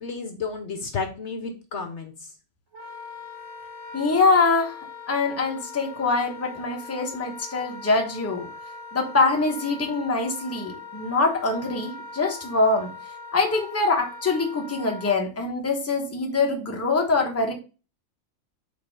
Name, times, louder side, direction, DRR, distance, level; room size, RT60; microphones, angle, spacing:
voice 1, 0.0-2.3, left 4 dB, 60° left, 5 dB, 1.1 m, -32 dB
Wind instrument woodwind instrument, 2.7-15.2, left 4 dB, 55° right, 2.7 m, -41 dB
voice 2, 3.9-4.8 5.1-8.5 8.9-12.9 13.3-17.5, left 3 dB, 10° left, 1 dB, 1.0 m, -24 dB
5.2 x 4.1 x 5.3 m, 0.34 s
omnidirectional pair, 1.4 m